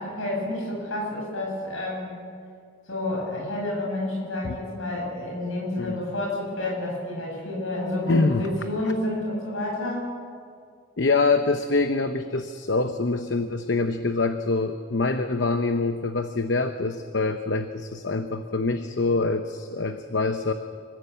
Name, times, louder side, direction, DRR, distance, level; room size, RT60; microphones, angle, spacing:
voice 1, 0.0-2.1 2.9-10.1, left 1 dB, 85° left, -2 dB, 7.6 m, -29 dB
voice 2, 8.1-8.5 11.0-20.5, left 3 dB, 60° left, 8 dB, 0.8 m, -25 dB
25.5 x 15.0 x 8.2 m, 2.1 s
head